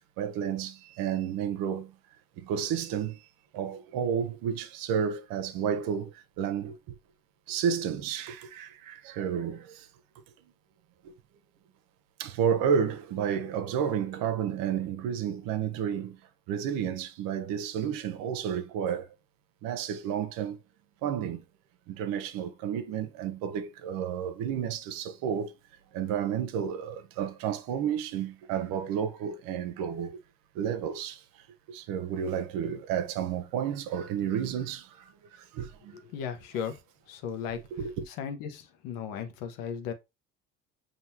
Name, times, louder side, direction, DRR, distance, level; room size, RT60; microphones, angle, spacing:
voice 1, 0.2-1.9 2.4-3.3 3.5-7.0 7.5-9.9 10.4-10.5 11.0-11.1 12.2-16.2 16.5-19.1 19.6-20.6 21.0-21.4 21.9-25.5 25.9-30.2 30.5-31.2 31.7-36.0 37.7-38.0, right 8 dB, 70° right, 0.9 m, -31 dB
voice 2, 35.9-36.8 37.1-37.6 38.1-39.9, left 8 dB, 75° left, 1.1 m, -36 dB
5.7 x 2.9 x 2.8 m
supercardioid pair, 80°, 35 cm